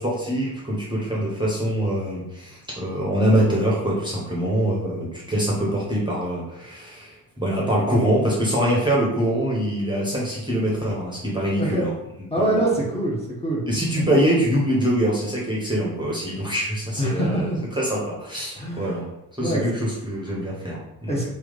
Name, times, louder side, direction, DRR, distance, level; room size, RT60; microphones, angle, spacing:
voice 1, 0.0-11.9 12.2-12.7 13.7-17.5 17.8-19.0 19.3-21.2, right 1 dB, 10° right, -5 dB, 1.1 m, -24 dB
voice 2, 12.3-13.6 17.0-17.6 18.5-18.9 19.4-19.6 21.1-21.3, right 1 dB, 10° left, -5 dB, 1.3 m, -24 dB
3.1 x 2.3 x 4.0 m, 0.86 s
figure-of-eight pair, 45°, 49 cm